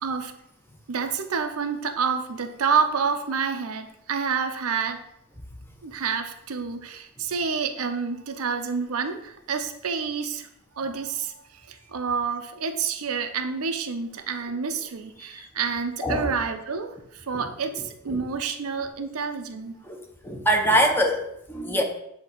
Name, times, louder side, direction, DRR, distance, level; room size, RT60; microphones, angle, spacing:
voice 1, 0.0-0.4 0.9-5.0 5.8-10.5 10.8-19.8, right 5 dB, 90° right, 7 dB, 0.6 m, -28 dB
voice 2, 20.2-21.8, equal, 10° left, 2 dB, 0.7 m, -23 dB
8.0 x 2.8 x 4.4 m, 0.78 s
head